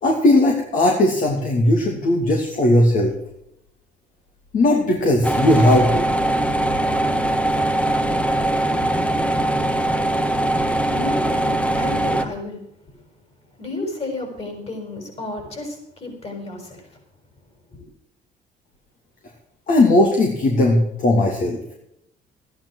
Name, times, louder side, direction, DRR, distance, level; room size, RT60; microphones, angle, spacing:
voice 1, 0.0-3.1 4.5-6.0 19.7-21.6, left 1 dB, 50° left, 1 dB, 2.9 m, -17 dB
sound 1, 5.2-12.3, right 1 dB, 5° left, 1.4 m, -21 dB
voice 2, 10.9-12.6 13.6-16.8 17.7-17.8, left 2 dB, 35° left, 4 dB, 6.5 m, -32 dB
13.5 x 10.5 x 6.5 m, 0.80 s
cardioid pair, 110°, 17 cm